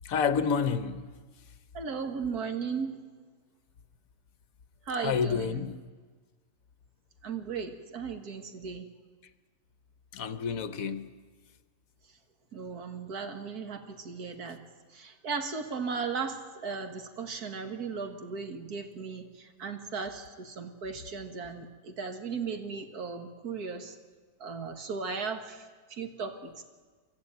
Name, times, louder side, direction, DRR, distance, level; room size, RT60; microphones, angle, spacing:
voice 1, 0.0-1.0 5.0-5.8 10.1-11.1, left 6 dB, 65° left, 12 dB, 1.3 m, -29 dB
voice 2, 1.7-3.0 4.9-5.6 7.2-8.9 12.5-14.6 14.9-24.0 24.4-25.7 25.9-26.6, right 5 dB, 80° right, 7 dB, 2.0 m, -36 dB
24.0 x 13.5 x 9.0 m, 1.5 s
omnidirectional pair, 1.6 m